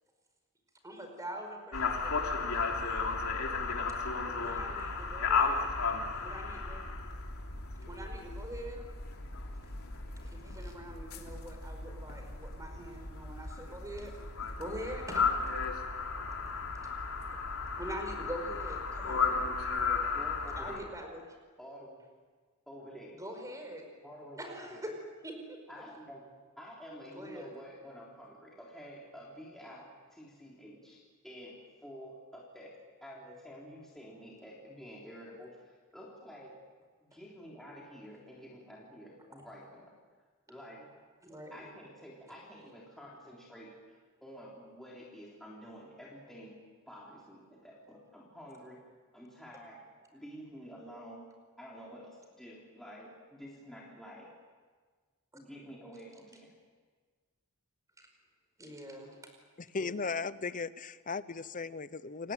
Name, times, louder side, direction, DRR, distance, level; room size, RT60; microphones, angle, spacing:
voice 1, 0.8-2.5 4.3-5.7 6.2-6.8 7.8-8.8 9.6-9.7 10.2-14.1 14.6-15.2 16.3-16.5 17.8-19.6 20.6-21.2 23.1-23.9 24.4-25.6 27.1-27.5 41.2-41.7 58.0-58.1 58.6-59.3 59.8-59.9, equal, 15° right, 4 dB, 5.0 m, -44 dB
sound 1, 1.7-20.8, left 4 dB, 75° left, 3.3 m, -34 dB
voice 2, 20.1-21.0 21.6-22.0 22.7-23.2 24.0-24.8 25.7-26.3 26.6-36.6 37.0-40.0 40.5-40.9 41.5-48.8 49.1-49.8 50.1-51.3 51.6-54.3 55.3-56.5, equal, ahead, -5 dB, 3.6 m, -49 dB
voice 3, 59.6-62.3, left 4 dB, 35° left, 15 dB, 0.8 m, -37 dB
29.5 x 18.5 x 9.1 m, 1.5 s
head